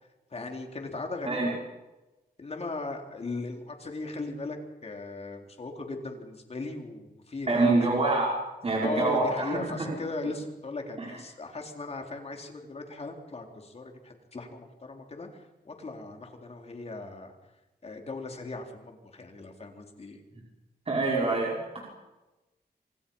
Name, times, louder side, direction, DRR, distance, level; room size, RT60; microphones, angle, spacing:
voice 1, 0.3-1.6 2.4-4.6 4.8-7.9 8.8-17.3 17.8-20.2, left 3 dB, 40° left, 3 dB, 4.1 m, -38 dB
voice 2, 7.5-8.3 8.6-9.6 20.9-21.9, right 3 dB, 35° right, -3 dB, 5.8 m, -25 dB
29.0 x 26.5 x 5.7 m, 1.0 s
wide cardioid pair, 175°, 17 cm